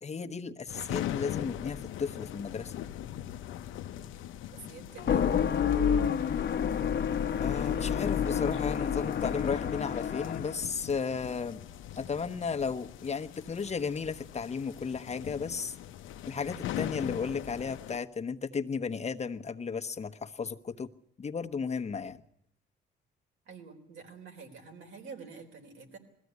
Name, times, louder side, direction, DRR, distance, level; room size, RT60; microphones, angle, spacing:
voice 1, 0.0-2.7 7.4-11.6 12.0-15.8 16.3-20.9 21.2-22.2, left 5 dB, 35° left, 7 dB, 1.1 m, -34 dB
sound 1, 0.7-18.0, left 11 dB, 85° left, 0.7 m, -41 dB
voice 2, 4.5-5.4 23.5-26.0, right 5 dB, 75° right, 4 dB, 4.0 m, -47 dB
sound 2, 5.0-10.6, left 8 dB, 55° left, 1.0 m, -29 dB
21.0 x 14.5 x 9.5 m, 0.76 s
cardioid pair, 90°, 20 cm